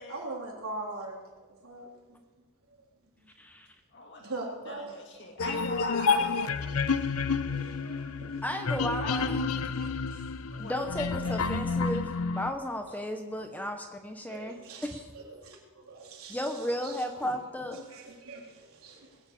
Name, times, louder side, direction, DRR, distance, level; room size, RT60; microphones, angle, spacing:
voice 1, 0.1-2.2 3.2-3.3 4.2-5.2 5.9-6.0 6.6-7.0 7.3-8.4 8.7-8.9 9.7-10.6 11.2-11.4 12.9-13.0 13.5-13.6 14.3-17.3 17.7-19.2, right 2 dB, 80° right, -2 dB, 3.6 m, -43 dB
voice 2, 3.9-4.3 4.7-7.3 9.0-9.3 10.6-10.8, left 2 dB, 55° left, 1 dB, 2.6 m, -40 dB
sound 1, 5.4-12.5, left 4 dB, 80° left, 0.7 m, -30 dB
voice 3, 8.4-9.5 10.6-15.0 16.3-17.8, left 1 dB, 5° left, 4 dB, 0.9 m, -34 dB
20.5 x 7.3 x 8.4 m, 1.3 s
head